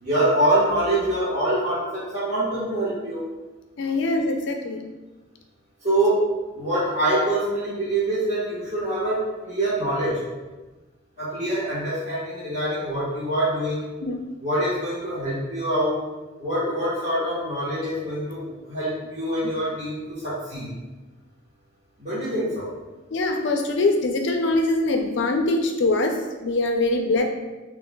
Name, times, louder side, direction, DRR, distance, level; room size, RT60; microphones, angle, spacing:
voice 1, 0.0-3.2 5.8-10.2 11.2-13.9 14.4-16.0 16.4-20.7 22.0-22.7, right 1 dB, 35° right, -10 dB, 1.2 m, -25 dB
voice 2, 3.8-4.9 14.0-14.3 23.1-27.2, left 2 dB, 65° left, 3 dB, 0.4 m, -23 dB
6.0 x 3.1 x 2.2 m, 1.2 s
head